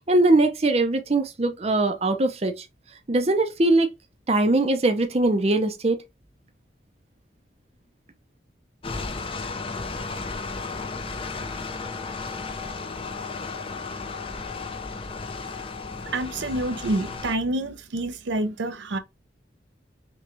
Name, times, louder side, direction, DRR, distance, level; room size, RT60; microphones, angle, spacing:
voice 1, 0.1-2.7 3.1-3.9 4.3-6.0, right 2 dB, 35° right, 0.6 m, -21 dB
sound 1, 8.8-17.4, left 4 dB, 30° left, 0.6 m, -34 dB
voice 2, 16.0-19.0, right 2 dB, 85° right, 0.6 m, -27 dB
6.0 x 2.3 x 3.0 m
head